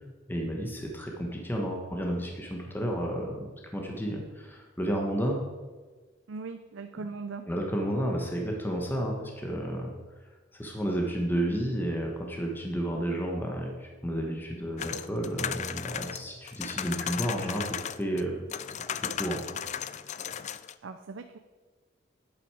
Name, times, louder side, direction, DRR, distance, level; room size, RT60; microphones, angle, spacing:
voice 1, 0.3-3.4 3.7-5.4 7.5-9.9 10.5-18.3 19.0-19.4, equal, 10° left, 0 dB, 1.2 m, -31 dB
voice 2, 6.3-7.5 20.8-21.4, right 4 dB, 70° right, 8 dB, 0.5 m, -39 dB
sound 1, 14.8-18.2 18.5-20.7, left 9 dB, 35° left, 0.4 m, -35 dB
10.5 x 8.6 x 4.8 m, 1.3 s
head